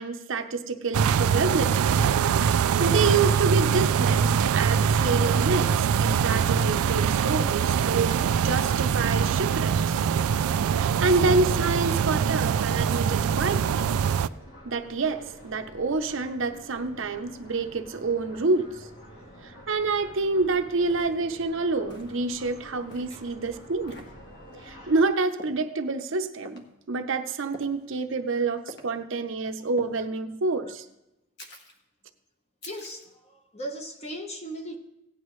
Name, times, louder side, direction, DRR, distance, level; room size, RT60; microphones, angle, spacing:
voice 1, 0.0-1.9 2.8-8.2 8.4-10.0 10.7-13.9 14.6-18.9 19.4-24.0 24.6-30.8, right 3 dB, 60° right, 7 dB, 0.7 m, -28 dB
sound 1, 0.9-14.3, right 7 dB, 85° right, 0.3 m, -23 dB
sound 2, 7.9-25.0, right 1 dB, 70° left, 3.0 m, -48 dB
sound 3, 20.1-20.2 20.9-21.2 21.9-22.2 22.9-23.2 23.9-24.1 25.4-25.6 26.5-26.7 27.5-27.8 28.7-28.9 29.8-30.0 31.4-31.8 32.6-33.1, left 1 dB, 50° left, 1.4 m, -45 dB
voice 2, 32.6-34.8, equal, 30° left, 4 dB, 1.0 m, -38 dB
17.0 x 9.8 x 3.2 m, 0.89 s
head